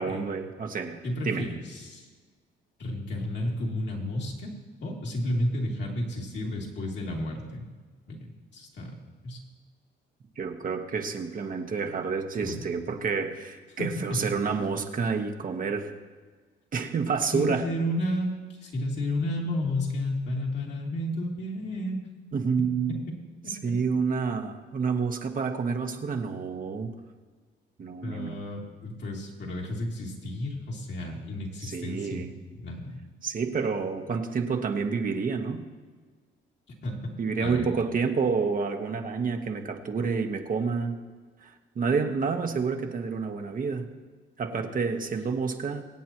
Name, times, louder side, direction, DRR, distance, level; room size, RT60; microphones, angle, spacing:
voice 1, 0.0-1.5 10.4-15.9 16.7-17.7 22.3-23.0 23.5-26.9 27.8-28.4 31.6-32.3 33.2-35.7 37.2-41.0 41.4-43.9 44.4-45.8, right 5 dB, 45° right, 4 dB, 1.2 m, -29 dB
voice 2, 1.0-2.1 2.8-4.5 4.8-7.7 8.1-8.9 9.2-9.4 12.4-12.6 13.8-14.2 17.3-18.3 18.6-22.0 28.0-32.2 32.6-33.0 36.8-37.0 37.4-37.7 44.9-45.0, left 1 dB, 65° left, -2 dB, 2.8 m, -32 dB
24.0 x 8.4 x 3.0 m, 1.4 s
cardioid pair, 90°, 20 cm